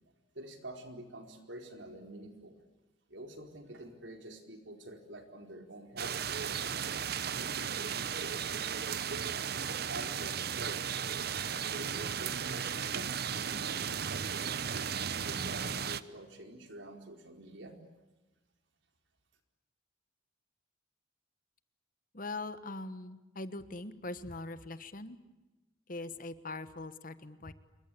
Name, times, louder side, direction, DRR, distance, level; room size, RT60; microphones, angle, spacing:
voice 1, 0.3-2.6 3.1-10.8 11.7-17.7, right 1 dB, 75° right, 5 dB, 4.6 m, -48 dB
sound 1, 6.0-16.0, right 7 dB, 55° right, 0.9 m, -35 dB
voice 2, 22.1-25.2 25.9-27.5, left 2 dB, 45° left, 13 dB, 1.4 m, -42 dB
28.0 x 23.0 x 8.6 m, 1.1 s
head